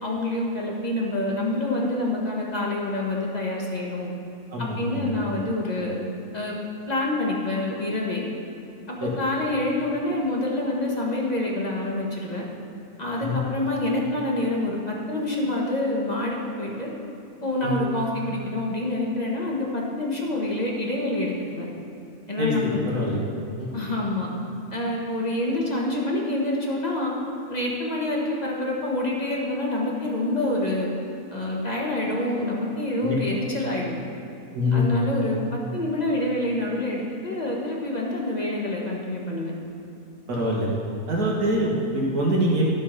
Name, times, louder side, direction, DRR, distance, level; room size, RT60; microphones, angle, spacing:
voice 1, 0.0-4.1 4.6-6.0 6.3-6.6 6.9-8.2 8.9-12.4 13.0-16.9 17.4-21.6 22.3-22.8 23.7-24.3 24.7-27.2 27.5-30.9 31.3-34.0 34.7-39.5, left 1 dB, 25° left, -3 dB, 1.5 m, -27 dB
voice 2, 4.5-5.0 9.0-9.1 13.2-13.4 17.6-17.8 22.4-23.2 23.5-23.7 33.0-33.2 34.5-34.9 40.3-40.7 41.1-42.6, left 1 dB, 75° right, -3 dB, 2.3 m, -24 dB
13.0 x 5.7 x 5.8 m, 2.7 s
omnidirectional pair, 1.6 m